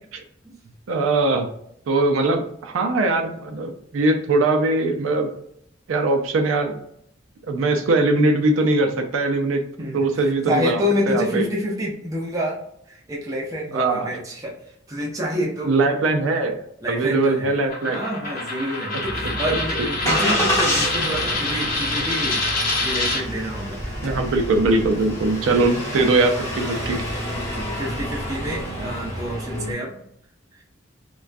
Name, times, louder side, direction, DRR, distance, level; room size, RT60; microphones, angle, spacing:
voice 1, 0.9-1.5 1.9-5.3 5.9-6.8 7.5-11.4 13.7-14.1 15.7-16.6 16.9-18.0 19.5-19.6 20.0-20.2 24.0-27.0, right 2 dB, 90° right, 4 dB, 0.4 m, -21 dB
voice 2, 9.8-12.6 12.9-14.5 14.9-15.7 16.8-17.5 17.9-23.8 25.4-25.7 27.3-30.0, equal, 15° right, -3 dB, 0.5 m, -28 dB
Coin (dropping), 17.7-23.2, left 2 dB, 45° left, 0.7 m, -26 dB
Engine starting, 19.0-29.7, equal, 15° left, 0.8 m, -28 dB
2.3 x 2.2 x 2.5 m, 0.71 s
head